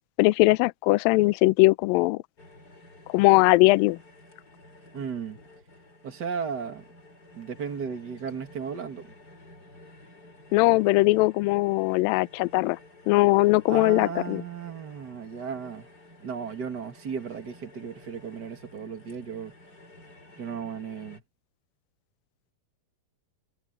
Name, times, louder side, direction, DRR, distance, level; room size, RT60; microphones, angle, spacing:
voice 1, 0.2-2.2 3.1-4.0 10.5-12.8 13.1-14.4, left 21 dB, 90° left, 2.0 m, -20 dB
sound 1, 2.4-21.2, left 1 dB, 20° left, 6.3 m, -52 dB
voice 2, 4.9-5.4 6.0-6.9 7.3-9.1 13.7-15.9 16.2-19.5 20.4-21.2, right 6 dB, 35° right, 1.8 m, -35 dB
omnidirectional pair, 4.7 m